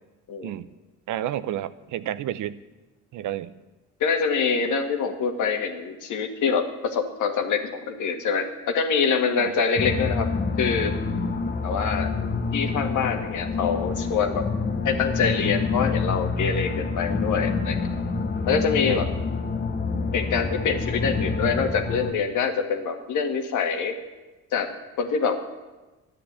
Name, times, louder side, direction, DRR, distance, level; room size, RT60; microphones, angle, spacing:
voice 1, 1.1-2.6 3.1-3.5 9.4-9.5 18.9-19.0, right 12 dB, 80° right, 15 dB, 0.7 m, -30 dB
voice 2, 4.0-10.3 10.6-10.9 11.6-12.1 12.5-14.4 14.8-17.9 18.5-19.1 20.1-23.9 24.5-25.4, left 5 dB, 75° left, 6 dB, 1.8 m, -25 dB
sound 1, 9.8-22.1, left 4 dB, 35° left, 1.2 m, -27 dB
11.5 x 10.0 x 8.8 m, 1.1 s
cardioid pair, 90°, 30 cm